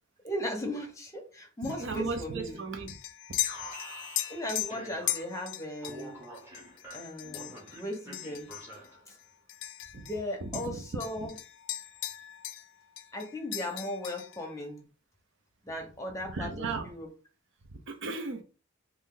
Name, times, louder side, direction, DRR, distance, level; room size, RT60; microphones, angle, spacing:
voice 1, 0.2-2.6 4.3-6.2 6.9-8.5 9.1-9.2 9.9-11.3 13.1-14.9 15.6-17.1, left 1 dB, 15° left, 0.8 m, -37 dB
sound 1, 1.6-10.3 10.5-12.7 13.0-14.5, left 14 dB, 55° left, 0.3 m, -38 dB
voice 2, 1.6-3.0 9.9-10.1 10.4-10.8 11.2-11.3 16.3-16.9 17.7-18.4, right 3 dB, 55° right, 0.6 m, -36 dB
Alarm, 3.4-5.4 5.8-9.1, equal, 10° right, 1.1 m, -47 dB
3.1 x 2.6 x 3.8 m
head